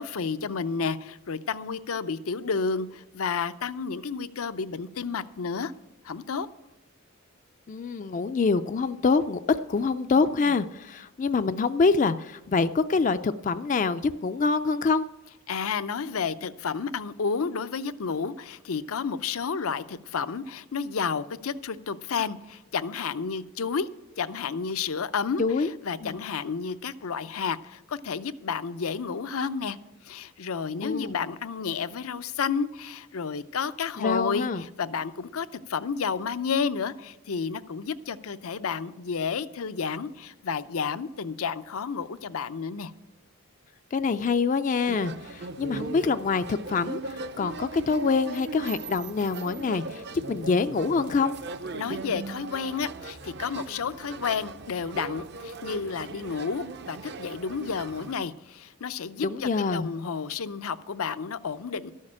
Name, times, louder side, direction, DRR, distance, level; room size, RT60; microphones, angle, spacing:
voice 1, 0.0-5.7 6.0-6.5 10.2-10.6 15.5-23.9 24.2-29.8 30.0-42.9 51.7-61.9, left 5 dB, 80° left, 14 dB, 0.6 m, -31 dB
voice 2, 7.7-15.1 25.4-25.7 26.0-26.2 30.8-31.2 34.0-34.6 43.9-51.4 59.2-59.9, left 4 dB, 35° left, 10 dB, 0.3 m, -25 dB
sound 1, 44.9-58.1, right 3 dB, 50° right, 0.6 m, -39 dB
13.5 x 6.5 x 8.6 m, 0.95 s
head